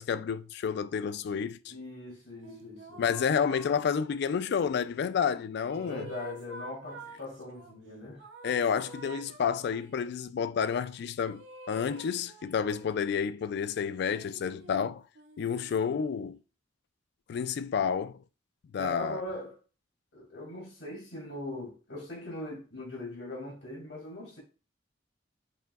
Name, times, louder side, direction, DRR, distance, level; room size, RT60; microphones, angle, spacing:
voice 1, 0.0-1.7 3.0-6.0 8.4-15.0 15.4-16.4 17.3-18.2 18.7-19.2, left 7 dB, 60° left, 0.3 m, -30 dB
voice 2, 1.7-3.0 5.8-8.2 18.8-19.6 20.1-24.4, left 1 dB, 85° left, 2.5 m, -40 dB
sound 1, 2.4-4.6 5.3-7.7 8.2-10.1 11.3-13.2 14.0-16.3, right 2 dB, 85° right, 0.8 m, -49 dB
7.0 x 3.0 x 2.3 m
head